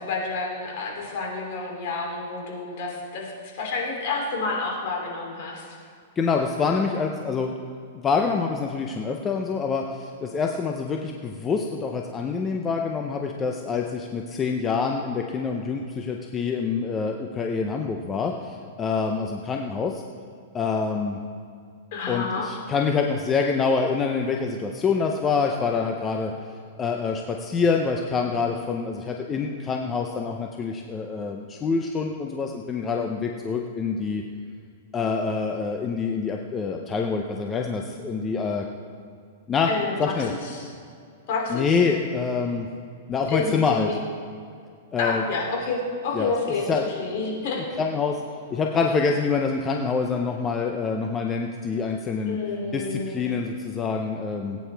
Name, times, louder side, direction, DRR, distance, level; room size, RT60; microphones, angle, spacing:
voice 1, 0.0-3.3 3.6-5.7 21.9-22.6 39.7-40.7 41.3-41.8 43.3-44.0 45.0-47.7 52.3-53.3, left 3 dB, 50° left, -1 dB, 3.1 m, -29 dB
voice 2, 6.2-7.5 8.0-20.0 20.5-21.2 22.1-26.3 26.8-34.2 34.9-38.6 39.5-39.7 40.0-40.3 41.5-42.7 43.1-43.9 44.9-45.2 46.1-46.3 46.7-46.8 47.6-48.2 48.5-52.4 52.7-54.6, left 5 dB, 15° left, 2 dB, 0.6 m, -26 dB
19.0 x 9.3 x 3.4 m, 2.3 s
hypercardioid pair, 155°, 0 cm